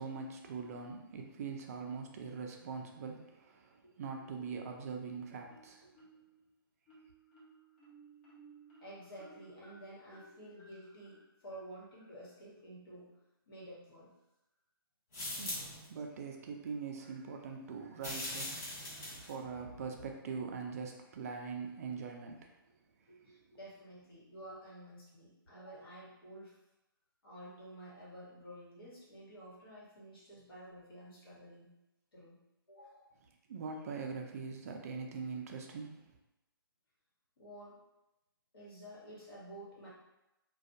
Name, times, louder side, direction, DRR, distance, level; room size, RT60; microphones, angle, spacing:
voice 1, 0.0-5.9 15.4-22.5 33.5-36.1, right 5 dB, 40° right, 3 dB, 0.4 m, -42 dB
Marimba xylophone, 5.5-6.4 6.9-12.4, right 2 dB, 30° left, 0.7 m, -59 dB
voice 2, 8.8-13.1 13.5-14.1 23.1-26.5 27.2-31.7 32.1-32.4 32.7-33.1 37.4-37.8 38.5-39.9, right 1 dB, 70° left, -6 dB, 1.3 m, -51 dB
sound 1, 15.1-15.8 18.0-19.3, left 1 dB, 45° left, 1.3 m, -40 dB
2.5 x 2.2 x 2.6 m, 0.92 s
hypercardioid pair, 150°, 13 cm